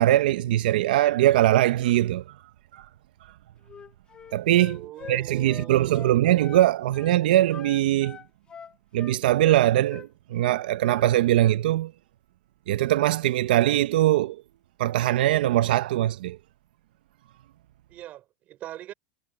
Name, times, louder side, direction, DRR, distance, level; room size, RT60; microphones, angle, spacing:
voice 1, 0.0-2.2 2.7-2.9 4.3-8.2 8.9-11.9 12.7-14.4 14.8-16.4, right 14 dB, 75° right, 0.7 m, -22 dB
Wind instrument woodwind instrument, 3.7-6.7 6.9-7.2 7.5-10.1 10.4-11.1, left 7 dB, 20° left, 2.0 m, -43 dB
voice 2, 4.7-6.2 17.9-18.9, right 14 dB, 30° right, 3.1 m, -42 dB
supercardioid pair, 160°, 5 cm